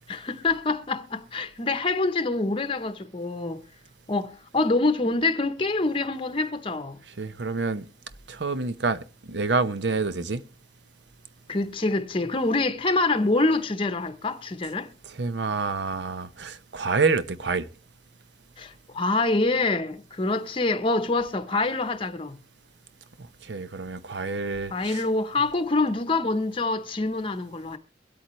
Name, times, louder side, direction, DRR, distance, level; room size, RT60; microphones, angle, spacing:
voice 1, 0.1-3.6 4.1-7.0 11.5-14.9 18.6-22.4 24.7-27.8, left 2 dB, 30° left, 0.8 m, -26 dB
voice 2, 7.2-7.9 8.3-9.0 9.3-10.4 15.0-17.7 23.4-25.1, right 4 dB, 75° right, 0.8 m, -27 dB
23.0 x 8.5 x 3.1 m
head